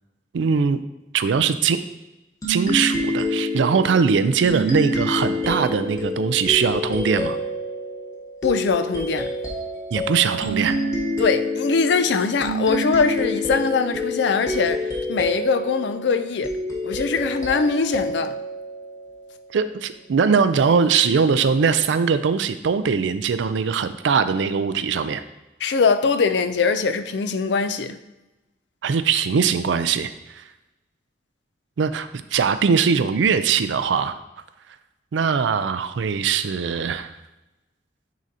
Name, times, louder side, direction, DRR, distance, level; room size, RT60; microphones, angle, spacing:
voice 1, 0.3-0.8 1.1-1.8 2.5-7.4 9.9-10.8 19.5-25.2 28.8-30.4 31.8-34.1 35.1-37.1, right 6 dB, 80° right, 0.4 m, -21 dB
sound 1, 2.4-19.6, equal, 20° left, 1.2 m, -28 dB
voice 2, 8.4-9.3 11.2-16.5 16.8-18.4 25.6-28.0, left 5 dB, 70° left, 0.4 m, -22 dB
9.2 x 3.8 x 2.8 m
head